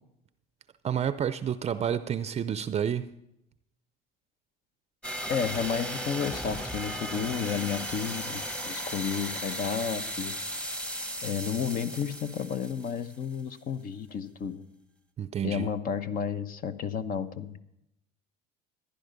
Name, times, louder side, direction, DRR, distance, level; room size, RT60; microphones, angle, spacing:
voice 1, 0.8-3.1 15.2-15.7, right 8 dB, 35° right, 13 dB, 0.5 m, -29 dB
sound 1, 5.0-13.4, equal, 5° left, 1.2 m, -36 dB
voice 2, 5.3-10.4 11.2-14.6 15.4-17.5, left 7 dB, 50° left, 11 dB, 1.0 m, -32 dB
15.0 x 10.5 x 5.2 m, 0.83 s
supercardioid pair, 90°, 19 cm